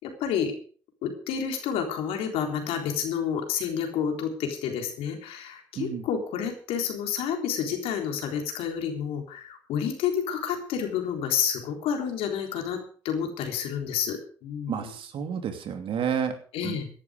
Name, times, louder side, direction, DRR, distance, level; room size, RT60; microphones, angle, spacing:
voice 1, 0.0-0.5 1.0-12.8 13.0-14.9 16.5-16.9, left 8 dB, 75° left, 4 dB, 3.7 m, -29 dB
voice 2, 14.7-16.4 16.6-16.8, right 7 dB, 60° right, 7 dB, 2.8 m, -30 dB
17.0 x 11.0 x 5.1 m, 0.42 s
supercardioid pair, 60°, 10 cm